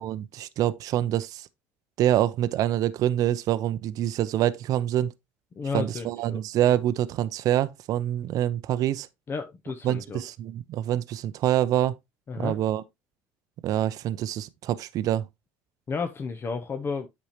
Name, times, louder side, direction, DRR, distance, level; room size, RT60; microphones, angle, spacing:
voice 1, 0.0-1.5 2.0-5.1 5.7-9.1 9.8-11.9 12.4-12.8 13.6-15.2, right 12 dB, 55° right, 0.5 m, -26 dB
voice 2, 5.6-6.4 9.3-10.2 12.3-12.6 15.9-17.1, left 5 dB, 35° left, 0.9 m, -32 dB
8.5 x 5.3 x 2.9 m
hypercardioid pair, 80°, 7 cm